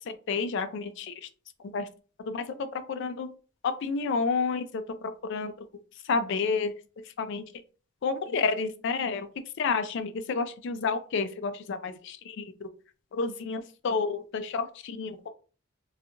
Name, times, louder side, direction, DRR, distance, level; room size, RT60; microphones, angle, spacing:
voice 1, 0.3-1.1 1.7-1.9 2.3-3.3 3.8-4.8 5.3-5.5 6.1-6.7 7.2-7.4 8.0-9.3 9.6-12.7 13.1-15.3, left 4 dB, 55° left, 10 dB, 0.3 m, -30 dB
2.7 x 2.3 x 2.4 m, 0.37 s
head